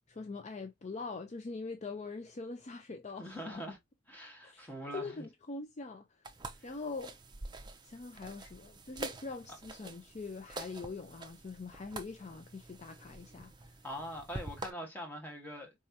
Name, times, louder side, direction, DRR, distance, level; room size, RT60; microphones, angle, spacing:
voice 1, 0.1-3.6 4.4-6.2 6.6-7.1 7.8-13.8, left 3 dB, 35° left, 0.4 m, -43 dB
voice 2, 3.2-3.8 4.1-5.1 13.8-15.7, equal, 10° left, 1.5 m, -43 dB
sound 1, 6.2-14.7, right 2 dB, 20° right, 0.6 m, -47 dB
4.7 x 3.3 x 2.7 m
head